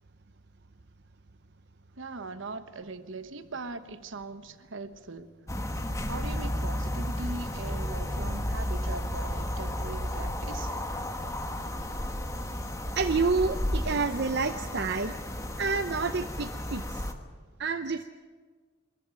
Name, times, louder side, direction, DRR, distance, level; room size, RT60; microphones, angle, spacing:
voice 1, 2.0-5.3 6.1-10.8, right 3 dB, 70° right, 1.2 m, -40 dB
sound 1, 5.5-17.1, left 1 dB, 15° left, 1.3 m, -33 dB
voice 2, 12.9-15.1 15.6-17.0 17.6-18.1, right 4 dB, 55° right, 0.7 m, -28 dB
23.0 x 14.5 x 9.2 m
head